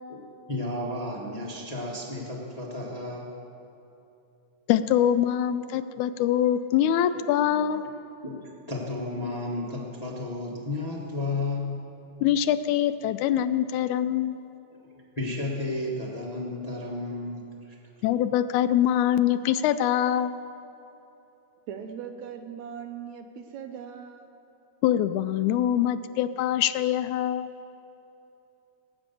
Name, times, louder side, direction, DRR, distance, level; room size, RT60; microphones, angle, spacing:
voice 1, 0.1-3.3 8.2-11.8 15.2-17.8, left 2 dB, 25° left, -3 dB, 0.7 m, -33 dB
voice 2, 4.7-7.8 12.2-14.4 18.0-20.4 24.8-27.5, left 11 dB, 85° left, 12 dB, 2.0 m, -24 dB
voice 3, 21.7-24.3, right 7 dB, 75° right, 6 dB, 2.1 m, -39 dB
18.0 x 9.1 x 6.9 m, 2.9 s
omnidirectional pair, 3.4 m